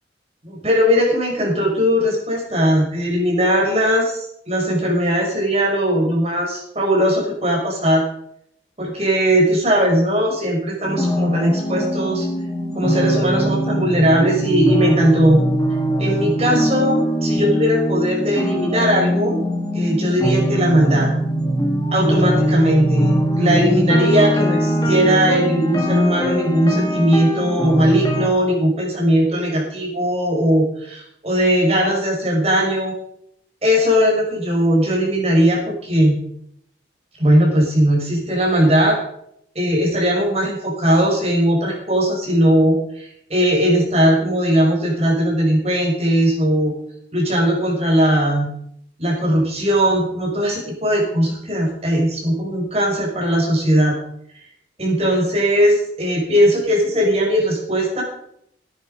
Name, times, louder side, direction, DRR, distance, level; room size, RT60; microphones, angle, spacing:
voice 1, 0.4-8.0 8.8-12.3 12.7-15.4 16.0-19.4 19.7-21.1 21.9-33.0 33.6-36.2 37.2-39.0 39.5-46.7 47.1-48.5 49.0-54.0 54.8-58.0, equal, 35° right, -1 dB, 5.6 m, -18 dB
sound 1, 10.8-28.3, equal, 20° left, 2.3 m, -21 dB
17.0 x 10.0 x 5.4 m, 0.73 s
head